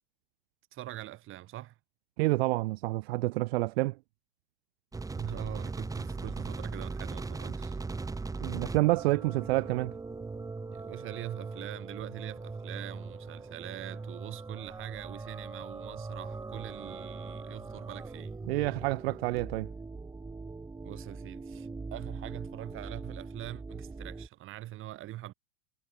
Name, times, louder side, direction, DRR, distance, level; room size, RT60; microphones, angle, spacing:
voice 1, 0.7-1.8 5.1-7.8 10.7-18.3 20.8-25.3, right 15 dB, 35° right, 6.0 m, -43 dB
voice 2, 2.2-4.0 8.4-9.9 18.5-19.7, right 22 dB, 60° right, 1.4 m, -28 dB
sound 1, 4.9-24.3, right 3 dB, 10° right, 5.1 m, -40 dB
supercardioid pair, 135°, 36 cm